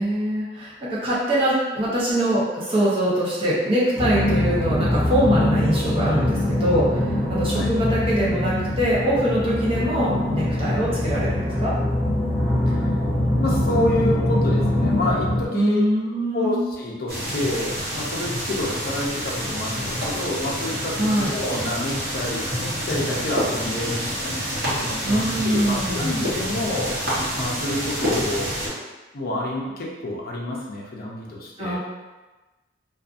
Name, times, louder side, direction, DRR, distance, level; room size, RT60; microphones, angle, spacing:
voice 1, 0.0-11.7 15.5-16.6 21.0-21.3 25.0-26.1 31.6-31.8, right 1 dB, 30° right, -7 dB, 0.7 m, -23 dB
sound 1, 4.0-15.4, left 1 dB, 10° left, 0.8 m, -23 dB
voice 2, 13.4-15.8 16.3-28.6 29.1-31.8, left 1 dB, 55° left, -3 dB, 0.5 m, -28 dB
sound 2, 17.1-28.7, equal, 55° right, 0.9 m, -28 dB
2.6 x 2.4 x 2.4 m, 1.2 s
head